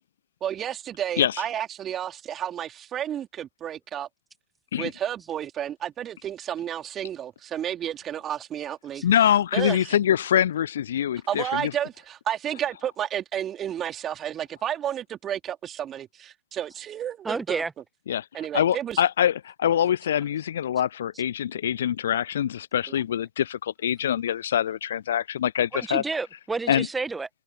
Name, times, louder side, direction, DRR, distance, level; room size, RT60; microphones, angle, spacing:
voice 1, 0.4-4.1 4.8-9.0 9.5-10.0 11.3-17.6 18.3-19.0 22.9-23.0, right 10 dB, 25° right, 3.7 m, -31 dB
voice 2, 9.0-11.7 18.1-18.3 18.5-26.0 26.7-26.9, left 10 dB, 65° left, 0.3 m, -24 dB
voice 3, 17.2-17.7 25.7-27.3, right 4 dB, 10° right, 1.7 m, -30 dB
figure-of-eight pair, 100°, 0 cm